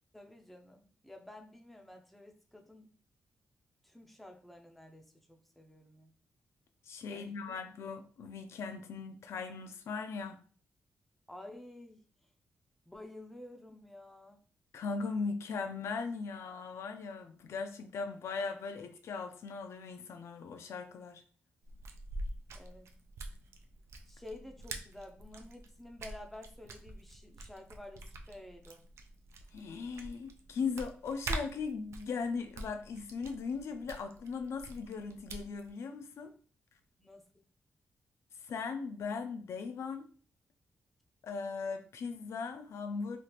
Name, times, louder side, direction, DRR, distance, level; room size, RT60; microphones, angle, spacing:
voice 1, 0.1-3.0 3.8-6.1 7.1-7.6 11.3-12.0 12.9-14.4 22.5-22.9 24.1-28.9 37.0-37.4, left 1 dB, 5° left, 0.5 m, -51 dB
voice 2, 6.9-10.4 14.7-21.2 29.5-36.3 38.4-40.1 41.2-43.2, left 5 dB, 75° left, 0.4 m, -38 dB
sound 1, 21.6-35.7, right 2 dB, 75° right, 0.4 m, -45 dB
3.2 x 2.4 x 2.9 m
wide cardioid pair, 125°, 5 cm